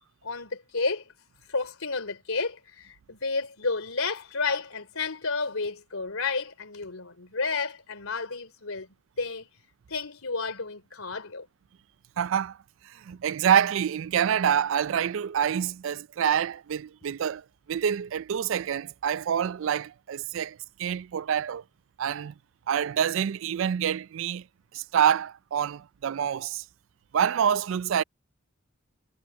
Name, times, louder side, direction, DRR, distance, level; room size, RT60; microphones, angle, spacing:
voice 1, 0.2-1.1 1.5-8.9 9.2-9.5 9.9-11.5, left 4 dB, 90° left, 3.7 m, -31 dB
voice 2, 12.2-12.6 12.8-21.6 22.0-22.3 22.7-24.4 24.7-26.6 27.1-28.0, right 8 dB, 70° right, 0.3 m, -27 dB
head